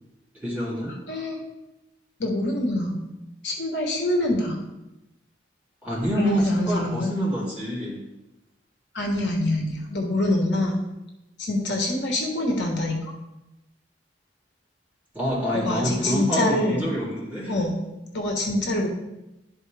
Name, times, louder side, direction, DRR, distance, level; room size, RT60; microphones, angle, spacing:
voice 1, 0.3-0.9 5.8-8.0 15.1-17.5, equal, 10° right, -9 dB, 2.9 m, -27 dB
voice 2, 1.1-1.4 2.2-3.0 3.4-4.6 6.2-7.2 8.9-10.8 11.4-13.0 15.5-16.9 17.5-17.7 18.1-18.9, left 1 dB, 70° left, 0 dB, 1.3 m, -25 dB
11.5 x 4.2 x 3.4 m, 0.96 s
head